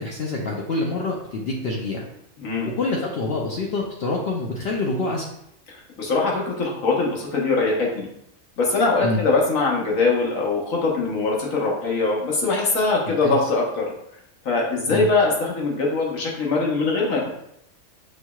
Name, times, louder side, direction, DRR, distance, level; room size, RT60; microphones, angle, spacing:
voice 1, 0.0-2.0 2.8-5.3 9.0-9.2 13.1-13.4 14.9-15.1, left 2 dB, 60° left, -1 dB, 0.7 m, -26 dB
voice 2, 2.4-2.7 5.7-8.1 8.6-13.9 14.4-17.3, left 3 dB, 80° left, -2 dB, 1.4 m, -22 dB
6.3 x 2.9 x 2.3 m, 0.76 s
omnidirectional pair, 1.4 m